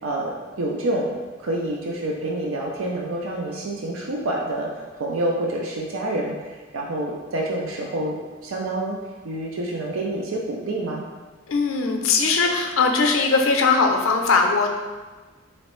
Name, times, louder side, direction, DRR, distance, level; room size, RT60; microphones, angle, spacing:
voice 1, 0.0-1.2 1.4-8.2 8.4-9.0 9.2-11.0, right 1 dB, 80° right, -1 dB, 0.5 m, -27 dB
voice 2, 11.5-14.7, left 4 dB, 80° left, 3 dB, 0.5 m, -20 dB
3.9 x 3.1 x 3.0 m, 1.3 s
head